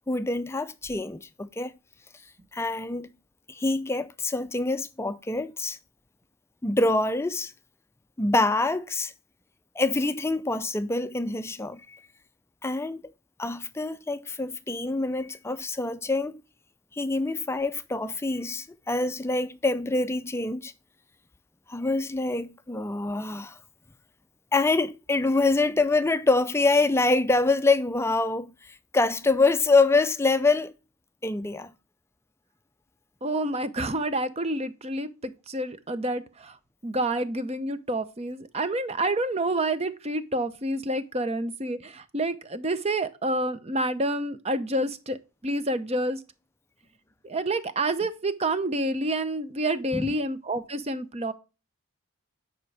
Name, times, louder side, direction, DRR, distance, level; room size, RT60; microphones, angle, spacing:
voice 1, 0.0-1.7 2.5-3.1 3.5-5.8 6.6-7.5 8.2-9.1 9.8-12.0 12.6-13.0 13.4-16.3 16.9-20.7 21.7-23.6 24.5-30.7 31.2-31.7 49.9-50.1, left 3 dB, 10° left, 0.4 m, -25 dB
voice 2, 33.2-46.2 47.2-51.3, right 1 dB, 30° right, 0.7 m, -28 dB
9.6 x 5.1 x 3.3 m
head